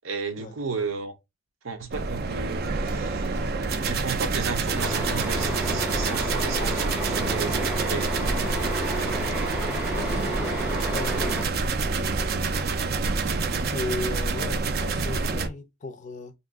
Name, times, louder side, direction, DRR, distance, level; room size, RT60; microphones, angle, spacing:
voice 1, 0.0-1.1 1.6-3.4 3.8-7.5 7.8-8.1, right 5 dB, 80° right, 0.7 m, -33 dB
sound 1, 1.9-15.5, right 4 dB, 50° right, 0.4 m, -27 dB
sound 2, 4.8-11.4, equal, 5° right, 0.7 m, -32 dB
voice 2, 9.9-10.6 10.9-11.5 13.7-16.3, left 3 dB, 35° left, 0.4 m, -36 dB
2.5 x 2.3 x 3.5 m
head